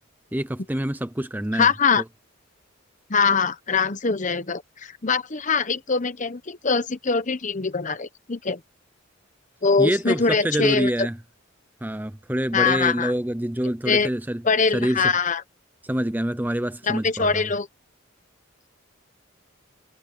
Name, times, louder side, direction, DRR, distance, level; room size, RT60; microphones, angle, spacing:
voice 1, 0.3-1.7 2.0-2.1 9.8-11.2 11.8-14.4 14.7-15.1 15.8-17.5, right 1 dB, 10° right, 0.6 m, -26 dB
voice 2, 1.6-2.0 3.1-8.6 9.6-10.9 12.5-13.1 13.9-14.1 14.4-15.4 16.8-17.7, left 5 dB, 35° left, 1.0 m, -23 dB
head